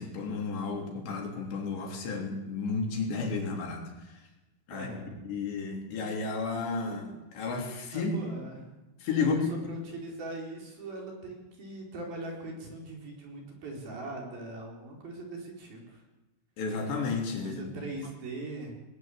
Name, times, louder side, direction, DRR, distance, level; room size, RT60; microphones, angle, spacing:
voice 1, 0.0-3.8 4.7-8.2 9.0-9.5 16.6-17.8, left 4 dB, 65° left, 2 dB, 5.5 m, -32 dB
voice 2, 4.7-5.2 7.9-8.7 9.2-16.0 17.4-18.7, right 2 dB, 50° right, 1 dB, 6.0 m, -41 dB
20.0 x 19.5 x 8.8 m, 1.0 s
omnidirectional pair, 5.5 m